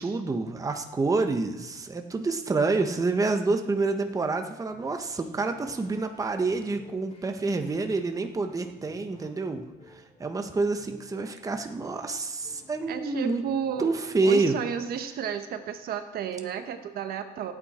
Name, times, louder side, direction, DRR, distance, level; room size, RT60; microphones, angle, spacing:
voice 1, 0.0-9.6 9.9-13.4 13.8-14.6, right 3 dB, 20° right, 5 dB, 1.1 m, -28 dB
sound 1, 4.7-14.4, left 2 dB, 40° left, 4.4 m, -54 dB
voice 2, 12.9-13.9 14.2-17.5, right 8 dB, 65° right, 8 dB, 1.1 m, -32 dB
18.0 x 8.8 x 4.3 m, 1.0 s
cardioid pair, 110°, 17 cm